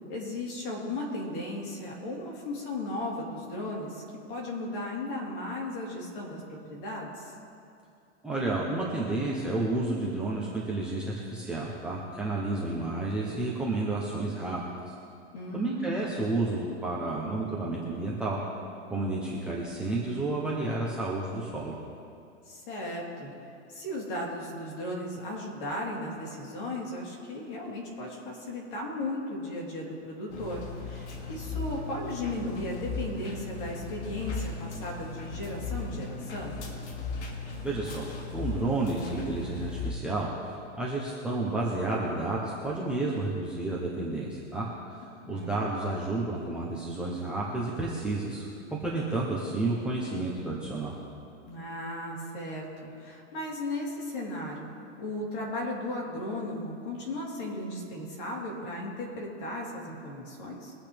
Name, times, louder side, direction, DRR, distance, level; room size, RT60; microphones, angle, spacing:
voice 1, 0.1-4.0 4.3-7.3 15.3-15.8 22.5-23.3 23.7-36.6 45.2-45.7 51.5-54.7 55.0-60.7, left 1 dB, 45° left, -3 dB, 3.7 m, -36 dB
voice 2, 8.2-14.6 14.9-15.0 15.5-18.4 18.9-21.7 37.6-44.6 45.3-50.9, right 2 dB, 5° right, -6 dB, 0.8 m, -31 dB
sound 1, 30.3-39.9, left 4 dB, 65° left, 2.3 m, -37 dB
23.0 x 9.0 x 3.4 m, 2.5 s
supercardioid pair, 170°, 36 cm